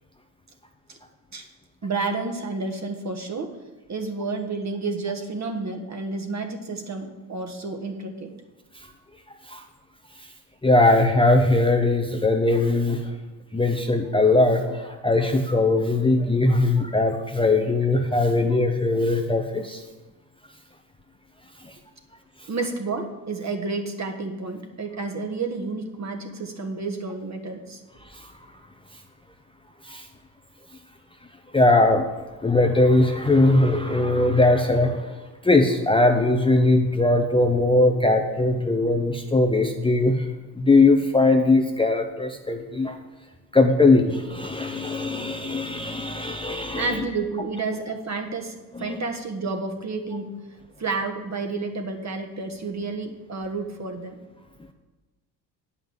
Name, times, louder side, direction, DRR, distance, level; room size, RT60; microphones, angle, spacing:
voice 1, 1.8-3.6 3.9-8.3 22.5-27.8 46.7-50.3 50.8-54.2, right 3 dB, 35° right, 5 dB, 1.6 m, -30 dB
voice 2, 10.6-13.0 13.5-19.8 28.1-28.3 29.8-30.0 31.5-32.2 32.4-35.2 35.4-40.3 40.6-43.0 43.5-47.0 48.7-49.0, left 2 dB, 10° left, 4 dB, 0.9 m, -20 dB
9.0 x 5.7 x 7.3 m, 1.2 s
hypercardioid pair, 60°, 48 cm